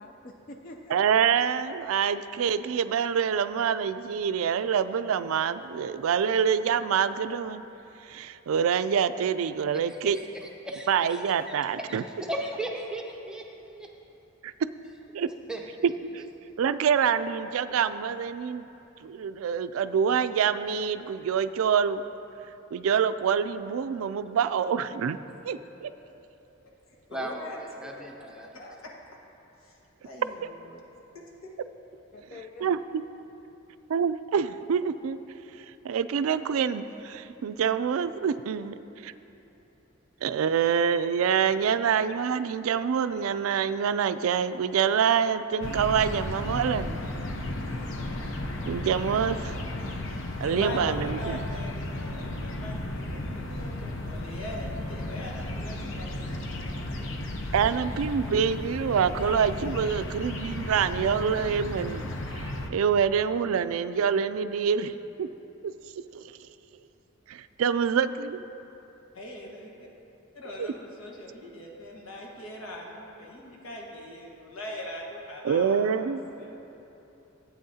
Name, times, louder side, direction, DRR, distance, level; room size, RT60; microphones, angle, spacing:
voice 1, 0.0-1.2 27.8-28.8 32.1-32.7, left 2 dB, 40° left, 2 dB, 0.4 m, -47 dB
voice 2, 0.9-7.6 8.1-10.2 10.9-12.0 14.4-14.5 15.1-15.3 15.8-16.2 16.6-18.7 19.0-22.0 22.7-25.2 25.4-25.9 32.6-33.0 33.9-35.2 35.8-38.7 39.0-39.1 40.2-47.0 48.7-49.5 50.4-51.4 57.5-62.1 62.4-65.3 65.6-65.7 66.1-66.3 67.3-68.4 70.6-70.7 75.4-76.2, right 7 dB, 85° right, 13 dB, 0.3 m, -26 dB
voice 3, 9.7-11.6 11.9-12.0 12.3-13.9 15.5-15.6 27.1-28.6, right 1 dB, 5° right, 0 dB, 0.5 m, -37 dB
voice 4, 27.1-27.6 29.6-29.8 30.0-30.8 31.4-31.5 50.5-57.2 69.1-69.9 70.3-76.8, left 1 dB, 90° left, -2 dB, 1.5 m, -41 dB
sound 1, 45.6-62.7, left 1 dB, 70° left, 0.7 m, -34 dB
15.0 x 8.4 x 2.8 m, 2.9 s
head